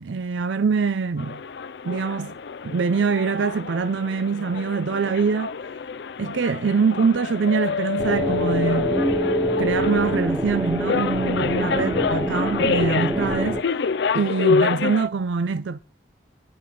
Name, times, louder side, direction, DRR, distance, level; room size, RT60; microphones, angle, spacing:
voice 1, 0.0-1.4 1.8-2.3 2.6-5.5 6.2-9.0 9.6-13.7 14.1-15.8, right 5 dB, 85° right, 0.5 m, -24 dB
sound 1, 1.2-15.1, left 4 dB, 70° left, 0.5 m, -27 dB
sound 2, 8.0-13.6, right 1 dB, 5° right, 0.6 m, -26 dB
9.3 x 6.3 x 7.3 m
head